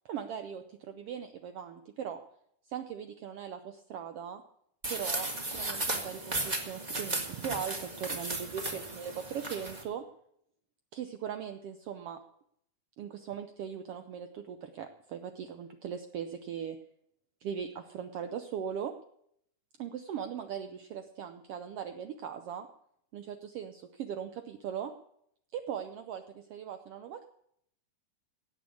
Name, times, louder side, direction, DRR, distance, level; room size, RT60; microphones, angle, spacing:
voice 1, 0.0-2.2 2.7-4.4 4.9-10.0 10.9-12.2 13.0-16.8 17.4-18.9 19.8-22.7 23.1-24.9 25.5-27.3, right 8 dB, 75° right, 8 dB, 1.3 m, -39 dB
sound 1, 4.8-9.8, right 2 dB, 25° right, 1.0 m, -35 dB
16.5 x 7.5 x 8.3 m, 0.74 s
omnidirectional pair, 3.5 m